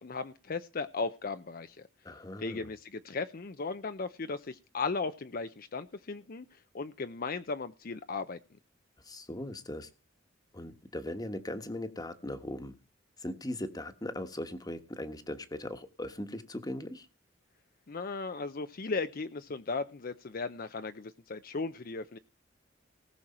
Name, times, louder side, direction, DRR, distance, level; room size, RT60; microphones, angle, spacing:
voice 1, 0.0-1.9 2.4-8.4 17.9-22.2, left 4 dB, 50° left, 10 dB, 0.6 m, -36 dB
voice 2, 2.0-2.7 9.0-9.9 10.5-12.7 13.2-17.1, left 1 dB, 20° left, 9 dB, 1.3 m, -39 dB
19.0 x 6.4 x 4.3 m, 0.31 s
head